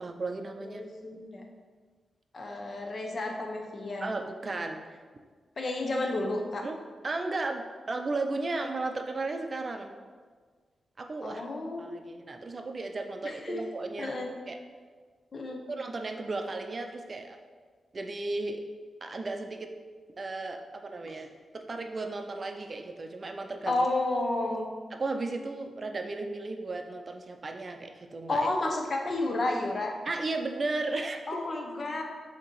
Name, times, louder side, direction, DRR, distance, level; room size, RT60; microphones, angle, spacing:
voice 1, 0.0-0.8 4.0-5.0 6.6-6.7 7.0-9.9 11.0-11.4 11.8-14.2 14.5-14.6 15.7-17.4 17.9-18.6 19.0-19.7 20.2-21.3 21.5-23.8 24.9-28.5 30.1-31.2, right 3 dB, 40° right, 5 dB, 0.5 m, -35 dB
voice 2, 0.6-1.4 2.3-4.1 5.6-6.7 11.2-12.0 13.2-13.6 14.0-14.3 15.3-15.6 23.7-24.7 28.3-30.0 31.3-32.0, left 2 dB, 45° left, 1 dB, 0.9 m, -31 dB
7.5 x 2.9 x 4.6 m, 1.5 s
wide cardioid pair, 115°, 0 cm